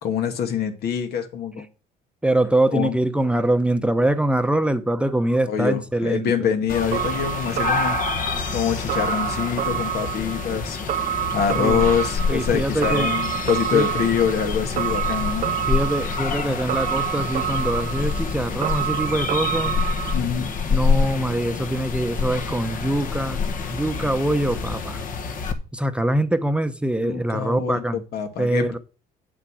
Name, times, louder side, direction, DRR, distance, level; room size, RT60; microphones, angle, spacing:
voice 1, 0.0-1.7 2.7-2.9 5.5-8.0 8.5-10.8 11.1-15.6 20.1-20.5 27.0-28.8, left 7 dB, 70° left, 2.1 m, -25 dB
voice 2, 2.2-6.5 11.5-11.9 12.3-13.1 13.7-13.9 15.7-19.7 20.7-25.0 25.7-28.0 28.4-28.8, right 1 dB, 5° right, 0.8 m, -23 dB
sound 1, 6.7-25.5, left 5 dB, 55° left, 1.6 m, -27 dB
sound 2, 6.9-20.2, right 12 dB, 50° right, 0.6 m, -28 dB
8.0 x 7.5 x 6.2 m
cardioid pair, 110°, 17 cm